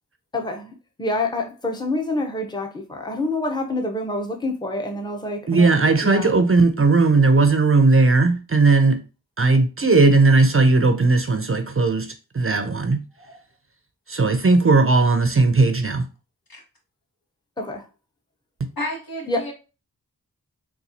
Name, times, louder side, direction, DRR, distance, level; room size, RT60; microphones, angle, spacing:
voice 1, 0.3-5.7 6.0-6.4 17.6-17.8 19.3-19.5, left 2 dB, 10° left, 0.7 m, -27 dB
voice 2, 5.5-9.0 9.4-13.0 14.1-16.0, right 3 dB, 35° right, 0.5 m, -17 dB
voice 3, 18.8-19.5, left 1 dB, 65° left, 1.5 m, -32 dB
4.1 x 2.3 x 2.7 m
cardioid pair, 40°, 38 cm